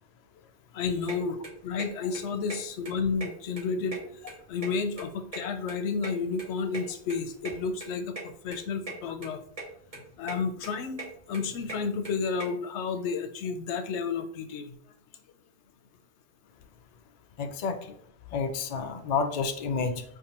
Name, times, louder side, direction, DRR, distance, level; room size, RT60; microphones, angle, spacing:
voice 1, 0.7-1.4 1.6-4.0 4.5-9.4 9.9-11.0 11.3-14.8, left 5 dB, 90° left, 8 dB, 0.9 m, -31 dB
sound 1, 1.1-1.2 1.4-1.9 2.1-2.2 2.5-2.6 2.8-3.6 3.9-5.1 5.3-6.8 7.1-7.2 7.4-7.5 7.8-7.9 8.2-8.3 8.5-9.0 9.2-9.6 9.9-10.4 10.6-12.4, right 3 dB, 35° right, 0.9 m, -39 dB
voice 2, 17.4-17.9 18.3-20.0, left 5 dB, 50° left, 7 dB, 0.5 m, -30 dB
5.1 x 3.5 x 2.9 m, 0.65 s
omnidirectional pair, 1.1 m